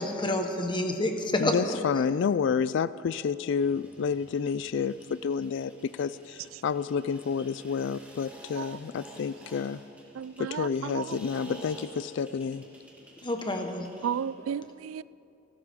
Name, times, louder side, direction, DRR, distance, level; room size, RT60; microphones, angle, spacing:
voice 1, 0.0-1.8 13.2-13.9, left 1 dB, 25° left, 1.3 m, -29 dB
voice 2, 1.4-9.8 10.4-12.6, left 6 dB, 65° left, 0.3 m, -29 dB
sound 1, 3.5-14.3, right 1 dB, 5° right, 2.3 m, -51 dB
voice 3, 10.1-11.2 14.0-15.0, right 8 dB, 85° right, 0.3 m, -34 dB
30.0 x 13.0 x 3.7 m
head